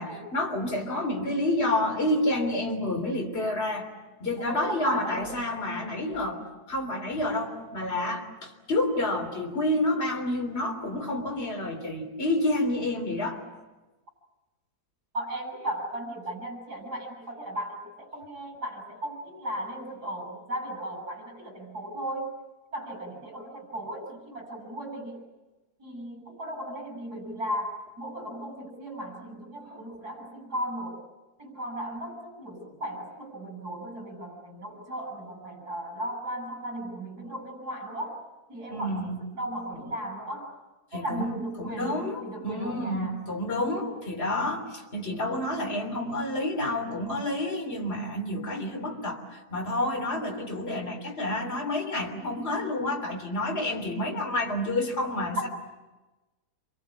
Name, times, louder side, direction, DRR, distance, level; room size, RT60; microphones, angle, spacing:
voice 1, 0.0-3.9 4.2-13.4 29.7-29.8 38.7-39.2 40.9-55.5, left 1 dB, 40° left, 1 dB, 3.7 m, -29 dB
voice 2, 4.4-5.3 15.1-22.3 22.7-25.2 25.8-31.0 31.4-38.2 38.5-40.5 40.9-43.2 55.4-55.5, right 1 dB, 80° right, 2 dB, 7.8 m, -36 dB
28.0 x 24.5 x 8.4 m, 1.1 s
omnidirectional pair, 1.7 m